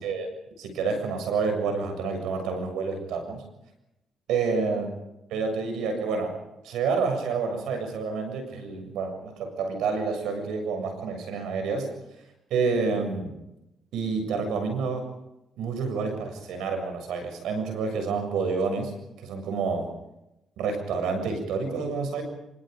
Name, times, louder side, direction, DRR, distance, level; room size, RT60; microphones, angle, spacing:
voice 1, 0.6-3.4 4.3-4.9 5.3-6.4 6.6-11.9 12.5-13.3 13.9-15.1 15.6-18.9 19.2-19.9 20.6-22.2, right 4 dB, 85° right, 6 dB, 7.2 m, -28 dB
26.5 x 26.0 x 5.4 m, 0.89 s
cardioid pair, 90°, 0 cm